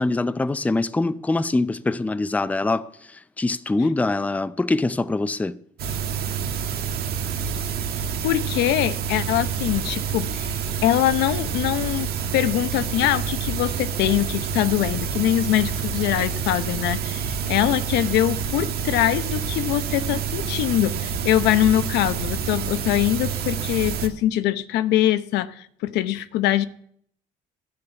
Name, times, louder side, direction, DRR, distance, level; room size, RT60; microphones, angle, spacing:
voice 1, 0.0-5.6, left 2 dB, 10° left, 0.5 m, -24 dB
sound 1, 5.8-24.1, right 7 dB, 70° right, 1.6 m, -28 dB
voice 2, 8.2-26.7, left 13 dB, 85° left, 0.8 m, -23 dB
13.0 x 6.8 x 8.2 m
cardioid pair, 110°, 17 cm